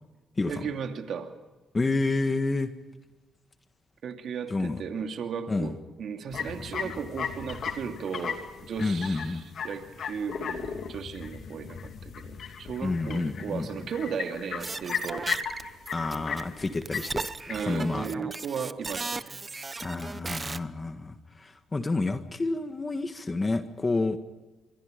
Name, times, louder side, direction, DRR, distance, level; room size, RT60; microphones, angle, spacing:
voice 1, 0.5-1.3 4.0-15.3 17.5-19.4, right 6 dB, 65° right, 5 dB, 2.5 m, -36 dB
voice 2, 1.7-2.7 4.5-4.8 5.5-5.7 8.8-9.4 12.8-13.7 15.9-17.3 17.6-18.1 19.8-24.2, left 3 dB, 25° left, 8 dB, 1.6 m, -29 dB
sound 1, 6.3-17.8, left 6 dB, 60° left, 2.9 m, -36 dB
sound 2, 14.6-16.4 16.7-20.6, right 3 dB, 25° right, 0.9 m, -36 dB
27.0 x 24.0 x 5.2 m, 1.2 s
cardioid pair, 90°, 0 cm